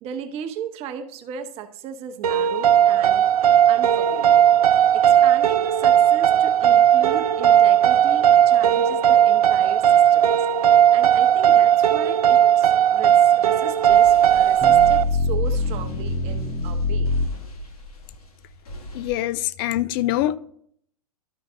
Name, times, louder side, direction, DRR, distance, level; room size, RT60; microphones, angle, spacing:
voice 1, 0.0-3.3 3.7-4.4 4.9-10.3 10.7-17.2, right 8 dB, 30° right, 0.9 m, -36 dB
sound 1, 2.2-15.0, right 10 dB, 75° right, 0.4 m, -16 dB
sound 2, 13.7-19.1, equal, 70° left, 2.1 m, -41 dB
sound 3, 14.6-17.3, left 2 dB, 20° left, 1.0 m, -24 dB
voice 2, 18.9-20.4, left 14 dB, 35° left, 0.4 m, -24 dB
12.0 x 5.1 x 3.8 m
figure-of-eight pair, 110°, 20 cm